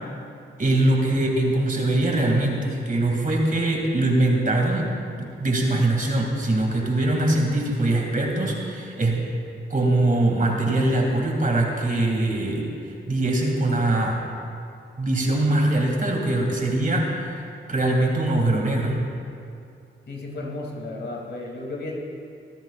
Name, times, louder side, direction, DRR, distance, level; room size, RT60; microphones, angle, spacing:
voice 1, 0.6-4.9 5.2-9.2 9.7-14.2 15.0-17.4 17.7-19.0, right 2 dB, 40° right, 0 dB, 2.5 m, -22 dB
voice 2, 20.1-22.0, left 2 dB, 55° left, -2 dB, 2.8 m, -33 dB
23.5 x 10.5 x 2.5 m, 2.5 s
cardioid pair, 55°, 21 cm